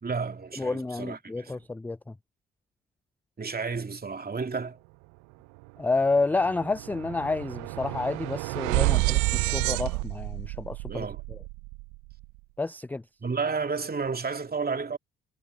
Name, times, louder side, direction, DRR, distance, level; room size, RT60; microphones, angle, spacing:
voice 1, 0.0-1.6 3.4-4.8 10.9-11.2 13.2-15.0, right 5 dB, 30° right, 2.5 m, -31 dB
voice 2, 0.6-2.1 5.8-11.1 12.6-13.0, left 3 dB, 5° left, 0.3 m, -29 dB
sound 1, 5.6-5.7 6.0-12.3, right 26 dB, 75° right, 0.5 m, -29 dB
hypercardioid pair, 50°, 29 cm